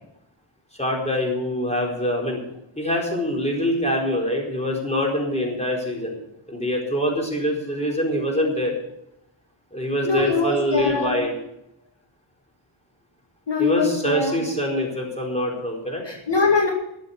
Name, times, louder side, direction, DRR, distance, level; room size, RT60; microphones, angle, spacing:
voice 1, 0.7-2.4 2.8-6.2 6.5-8.7 9.7-11.4 13.6-16.0, equal, 15° left, -1 dB, 4.4 m, -24 dB
voice 2, 10.0-11.2 13.5-14.5 16.0-16.7, left 4 dB, 60° left, 0 dB, 2.3 m, -22 dB
12.5 x 7.7 x 8.3 m, 0.82 s
wide cardioid pair, 55°, 48 cm